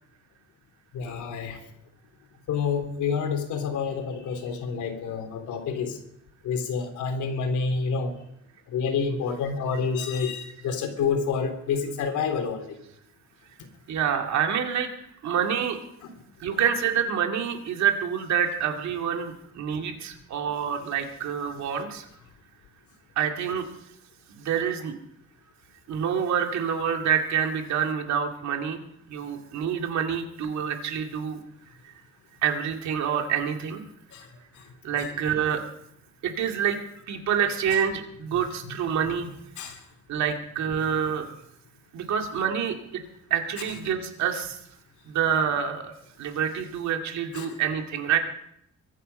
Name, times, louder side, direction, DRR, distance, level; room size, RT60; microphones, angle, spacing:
voice 1, 0.9-1.6 2.5-6.0 6.4-8.1 8.7-12.8 16.5-16.6 34.1-34.2 39.6-39.8 47.3-47.6, left 5 dB, 80° left, 6 dB, 3.1 m, -28 dB
voice 2, 13.9-14.9 15.2-15.8 16.4-22.1 23.2-23.7 24.3-24.9 25.9-31.4 32.4-33.8 34.8-35.6 36.2-36.8 37.1-39.3 40.1-41.3 41.9-43.0 43.3-44.6 45.0-48.2, right 8 dB, 70° right, 4 dB, 2.4 m, -27 dB
23.0 x 9.5 x 5.5 m, 0.75 s
cardioid pair, 170°, 29 cm